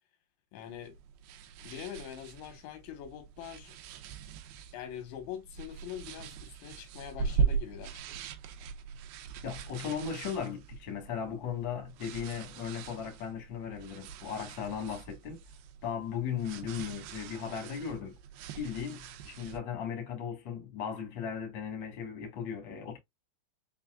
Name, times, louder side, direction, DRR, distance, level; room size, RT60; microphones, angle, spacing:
voice 1, 0.5-1.0 1.6-3.8 4.7-8.0, left 10 dB, 90° left, 3.5 m, -43 dB
sound 1, 0.7-19.6, right 6 dB, 85° right, 2.2 m, -40 dB
voice 2, 9.4-15.4 15.8-18.2 18.6-23.0, left 7 dB, 75° left, 1.0 m, -37 dB
7.0 x 2.3 x 2.3 m
omnidirectional pair, 5.0 m